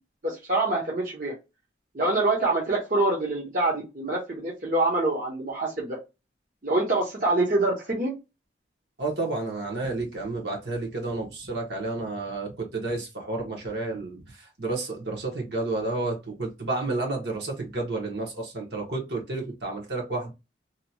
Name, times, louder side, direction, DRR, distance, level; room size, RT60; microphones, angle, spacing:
voice 1, 0.2-1.3 1.9-6.0 6.6-8.1, right 2 dB, 45° right, 0.8 m, -25 dB
voice 2, 9.0-20.3, right 2 dB, 65° right, 1.0 m, -31 dB
2.8 x 2.3 x 2.7 m
head